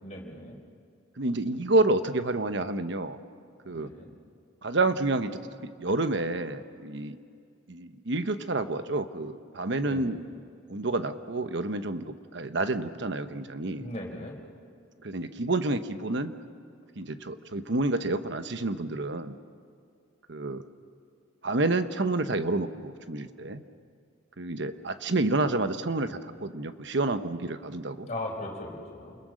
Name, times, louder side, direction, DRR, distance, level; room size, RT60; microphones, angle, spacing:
voice 1, 0.0-0.6 3.7-4.1 9.7-10.2 13.7-14.4 28.0-29.2, left 1 dB, 35° left, -1 dB, 4.3 m, -38 dB
voice 2, 1.2-3.2 3.7-3.9 4.6-7.2 7.7-10.2 10.7-13.9 15.0-16.3 17.0-19.3 20.3-20.6 21.4-23.6 24.4-28.1, right 2 dB, 65° right, 10 dB, 1.1 m, -29 dB
28.5 x 22.0 x 6.4 m, 2.3 s
head